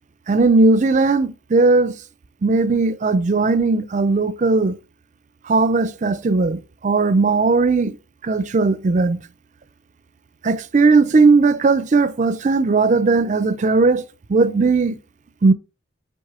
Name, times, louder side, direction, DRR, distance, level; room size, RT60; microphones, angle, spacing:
voice 1, 0.3-2.0 2.4-4.7 5.5-8.0 8.2-9.2 10.4-14.0 14.3-15.0 15.4-15.5, right 3 dB, 35° right, 0.4 m, -17 dB
6.4 x 4.1 x 3.6 m
head